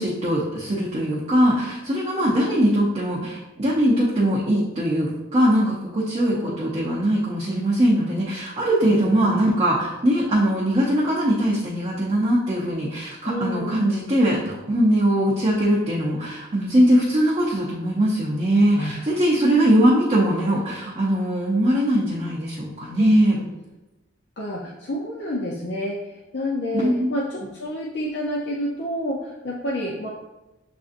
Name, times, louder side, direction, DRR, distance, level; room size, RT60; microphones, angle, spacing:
voice 1, 0.0-23.4 26.7-27.1, right 1 dB, 30° right, -7 dB, 0.6 m, -21 dB
voice 2, 6.2-6.6 9.0-9.4 13.2-13.8 18.7-19.0 19.5-19.7 23.0-23.1 23.4-23.5 24.4-30.1, left 1 dB, 55° left, -4 dB, 0.5 m, -29 dB
6.9 x 2.6 x 2.5 m, 1.0 s
head